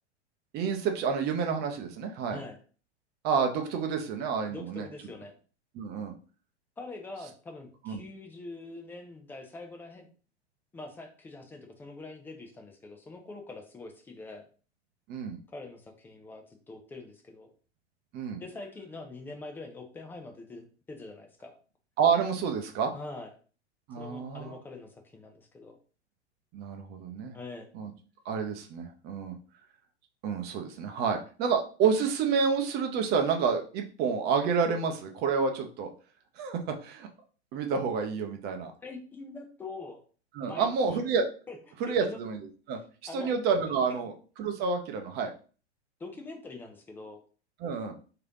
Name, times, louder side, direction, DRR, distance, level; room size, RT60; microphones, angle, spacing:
voice 1, 0.5-2.4 3.2-4.9 5.7-6.1 7.9-8.0 15.1-15.4 18.1-18.4 22.0-22.9 23.9-24.6 26.5-27.4 27.7-27.9 28.2-29.4 30.2-35.9 36.4-37.1 37.5-38.7 40.3-41.3 41.8-42.8 43.1-45.3 47.6-47.9, right 6 dB, 30° right, 4 dB, 0.7 m, -29 dB
voice 2, 4.5-5.3 6.8-10.1 10.7-14.5 15.5-17.5 18.4-21.6 22.9-23.3 24.0-25.8 27.3-27.7 38.8-40.0 40.4-41.0 41.5-41.6 41.8-42.2 43.1-43.3 43.7-43.8 46.0-47.2, left 3 dB, 5° left, 3 dB, 0.3 m, -44 dB
3.2 x 2.9 x 3.6 m, 0.38 s
figure-of-eight pair, 95°, 34 cm